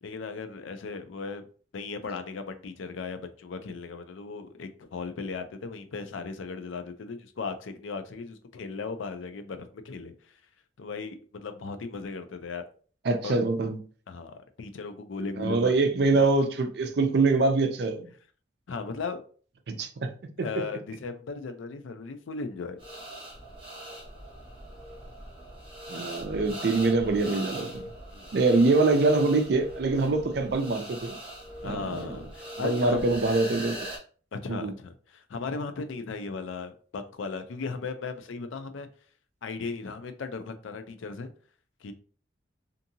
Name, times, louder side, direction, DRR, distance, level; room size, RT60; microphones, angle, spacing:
voice 1, 0.0-1.5 1.7-10.1 10.8-12.6 13.2-13.4 14.1-15.7 16.1-16.3 18.7-19.2 20.4-22.8 28.1-28.3 31.6-33.0 34.3-38.9 39.4-41.3 41.8-41.9, left 4 dB, 85° left, 0.4 m, -37 dB
voice 2, 13.0-13.8 15.4-18.1 19.7-20.5 25.9-27.9 28.3-31.2 31.6-32.2 32.6-33.8 34.5-34.7, right 3 dB, 55° right, 0.4 m, -24 dB
sound 1, 22.8-34.0, right 1 dB, 25° right, 1.0 m, -41 dB
2.7 x 2.6 x 2.6 m
head